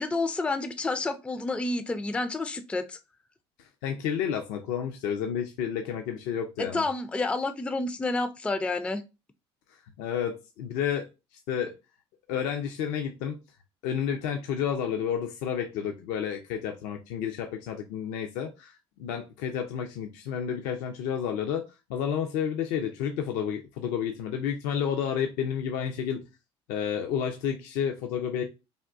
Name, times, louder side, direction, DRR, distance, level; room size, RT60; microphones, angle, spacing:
voice 1, 0.0-3.0 6.6-9.0, left 3 dB, 10° left, 0.3 m, -29 dB
voice 2, 3.6-6.8 10.0-11.1 11.5-11.7 12.3-13.4 13.8-26.2 26.7-28.4, left 8 dB, 70° left, 0.5 m, -31 dB
3.5 x 2.3 x 2.5 m
hypercardioid pair, 70°, 14 cm